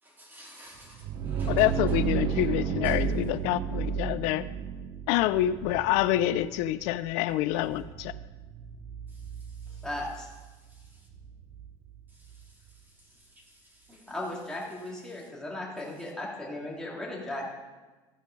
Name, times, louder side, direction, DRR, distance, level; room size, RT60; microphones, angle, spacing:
voice 1, 0.0-2.0 2.8-3.0 9.1-9.9 10.5-11.1 12.1-14.1 15.1-15.3, equal, 15° right, -2 dB, 2.9 m, -55 dB
sound 1, 0.8-12.4, right 7 dB, 45° right, 0.7 m, -34 dB
voice 2, 1.5-4.5 5.1-8.1, left 13 dB, 85° left, 15 dB, 0.4 m, -27 dB
voice 3, 9.8-10.3 14.1-17.5, left 1 dB, 5° left, -4 dB, 2.5 m, -36 dB
14.5 x 5.1 x 5.3 m, 1.2 s
cardioid pair, 125°, 11 cm